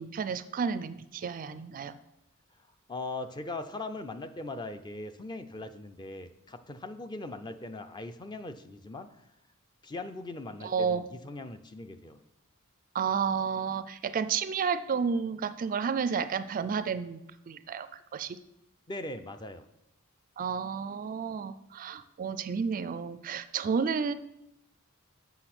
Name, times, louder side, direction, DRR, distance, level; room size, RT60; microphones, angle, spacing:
voice 1, 0.0-2.0 10.6-11.0 12.9-17.2 17.5-17.9 18.1-18.4 20.4-24.1, right 6 dB, 40° right, 13 dB, 0.3 m, -31 dB
voice 2, 2.9-9.1 9.8-12.2 18.9-19.7, left 2 dB, 20° left, 9 dB, 0.5 m, -40 dB
7.9 x 6.2 x 5.9 m, 0.86 s
head